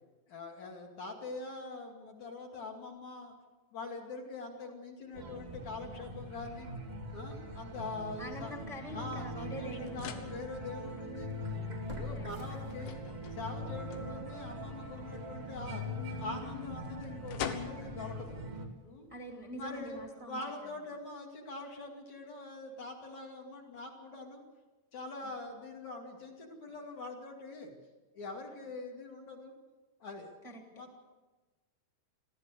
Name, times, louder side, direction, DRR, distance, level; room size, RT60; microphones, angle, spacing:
voice 1, 0.3-3.3 3.7-6.7 7.1-8.5 8.9-11.3 11.9-13.0 13.3-15.8 16.2-18.4 18.8-19.1 19.5-24.4 24.9-27.7 28.1-29.5 30.0-30.3 30.7-31.0, left 3 dB, 45° left, 1 dB, 3.1 m, -43 dB
sound 1, 5.1-18.7, left 1 dB, 65° right, 0.6 m, -42 dB
voice 2, 8.2-10.2 12.1-12.3 19.1-20.4 25.2-25.3 30.4-30.8, equal, 25° right, 0 dB, 0.7 m, -45 dB
sound 2, 9.3-20.1, left 8 dB, 85° left, 3.9 m, -49 dB
sound 3, 11.9-13.3 13.7-13.8, right 2 dB, 15° left, 1.1 m, -48 dB
23.0 x 15.5 x 8.1 m, 1.2 s
omnidirectional pair, 5.7 m